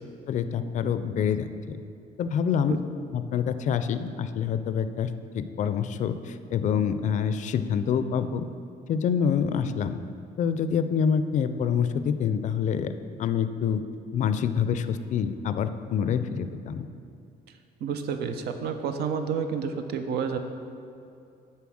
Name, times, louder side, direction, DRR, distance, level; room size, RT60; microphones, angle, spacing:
voice 1, 0.3-1.5 2.2-2.8 3.1-5.1 5.3-8.5 8.9-10.0 10.4-12.9 13.2-13.8 14.1-16.9, left 7 dB, 45° left, 11 dB, 0.4 m, -26 dB
voice 2, 17.8-20.4, right 6 dB, 70° right, 7 dB, 0.6 m, -29 dB
7.0 x 4.4 x 6.3 m, 2.6 s
cardioid pair, 110°, 17 cm